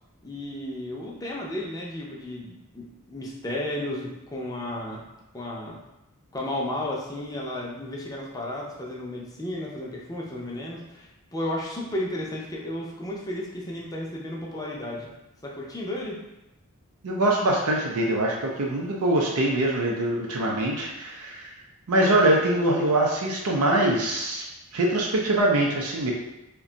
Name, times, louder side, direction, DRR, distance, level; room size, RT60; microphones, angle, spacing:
voice 1, 0.2-5.0 5.3-5.8 6.3-15.1 15.4-16.2, left 1 dB, 15° left, -3 dB, 0.5 m, -33 dB
voice 2, 17.0-21.5 21.9-24.4 24.7-26.1, right 1 dB, 85° right, -2 dB, 0.5 m, -23 dB
2.5 x 2.2 x 3.8 m, 0.95 s
head